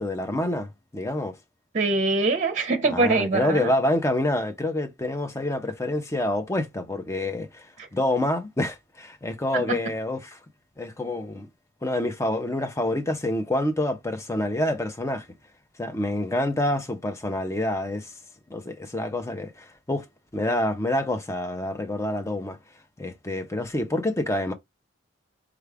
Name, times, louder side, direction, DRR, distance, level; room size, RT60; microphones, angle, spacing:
voice 1, 0.0-1.4 2.9-10.4 10.8-11.5 11.8-15.3 15.8-18.1 18.5-20.1 20.3-22.6 23.0-24.5, left 1 dB, 15° left, 0.6 m, -27 dB
voice 2, 1.7-3.7 7.8-7.9 9.5-9.8, right 3 dB, 40° right, 0.7 m, -23 dB
4.8 x 2.4 x 3.4 m
head